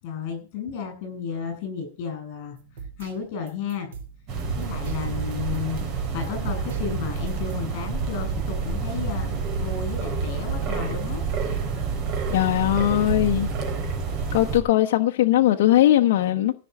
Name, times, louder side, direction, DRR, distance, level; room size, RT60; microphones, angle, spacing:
voice 1, 0.0-2.6 3.0-3.9 4.6-11.2, left 6 dB, 50° left, 7.5 m, -33 dB
sound 1, 2.6-7.5, right 5 dB, 85° right, 4.8 m, -44 dB
sound 2, 4.3-14.6, right 5 dB, 40° right, 3.7 m, -28 dB
voice 2, 12.3-13.5 14.3-16.5, left 13 dB, 65° left, 0.9 m, -20 dB
15.5 x 6.1 x 8.2 m
supercardioid pair, 155°, 0 cm